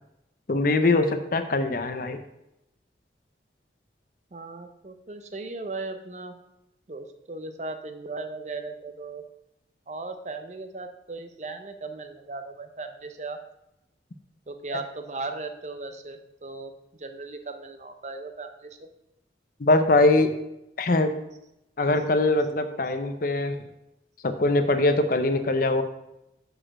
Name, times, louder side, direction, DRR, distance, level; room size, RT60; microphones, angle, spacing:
voice 1, 0.5-2.2 19.6-20.3 20.8-21.1 21.8-23.6 24.2-25.8, left 2 dB, 50° left, 8 dB, 0.6 m, -22 dB
voice 2, 4.3-6.4 6.9-9.2 9.9-13.4 14.5-16.7 17.0-18.9, right 3 dB, 40° right, 7 dB, 0.7 m, -37 dB
6.5 x 5.0 x 6.1 m, 0.87 s
head